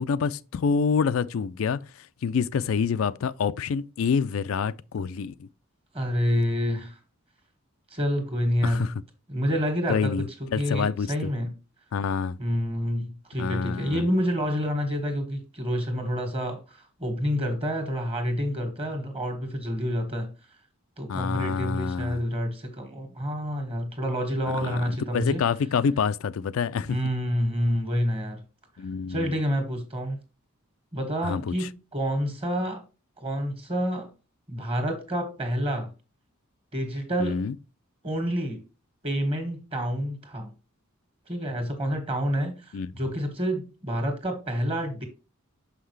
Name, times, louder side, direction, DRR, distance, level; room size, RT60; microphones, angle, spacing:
voice 1, 0.0-5.5 8.6-8.9 9.9-10.2 10.5-11.3 11.9-12.4 13.4-14.0 21.1-22.2 24.6-27.0 28.8-29.3 31.2-31.7 37.2-37.6 42.7-42.9, left 6 dB, 75° left, 0.4 m, -27 dB
voice 2, 5.9-7.0 7.9-8.9 9.3-11.5 12.4-20.3 21.0-25.4 26.9-28.4 29.1-30.2 30.9-32.8 33.2-34.1 34.5-35.9 36.7-37.4 38.0-38.6 39.0-40.5 41.3-45.0, equal, 30° right, 1.7 m, -28 dB
6.3 x 5.8 x 3.2 m
head